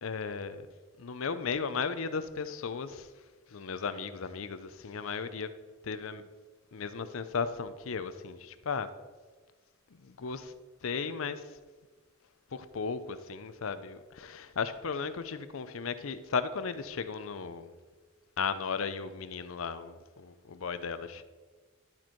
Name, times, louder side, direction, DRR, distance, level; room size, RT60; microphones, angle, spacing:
voice 1, 0.0-0.7 1.0-3.1 3.5-5.5 5.8-6.2 6.7-8.9 9.9-10.5 10.8-11.6 12.5-17.7 18.4-21.2, left 5 dB, 70° left, 12 dB, 0.5 m, -35 dB
12.0 x 4.5 x 4.4 m, 1.3 s
head